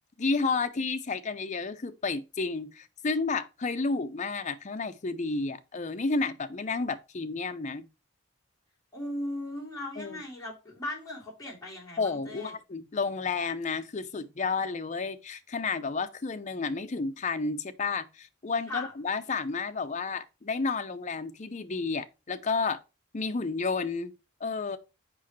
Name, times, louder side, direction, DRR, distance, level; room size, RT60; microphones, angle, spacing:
voice 1, 0.2-7.9 10.0-10.2 12.0-22.8 23.1-24.1 24.4-24.8, left 4 dB, 35° left, 0.5 m, -31 dB
voice 2, 8.9-12.6 18.7-18.9, left 1 dB, 20° left, 2.9 m, -38 dB
6.2 x 5.1 x 3.1 m
head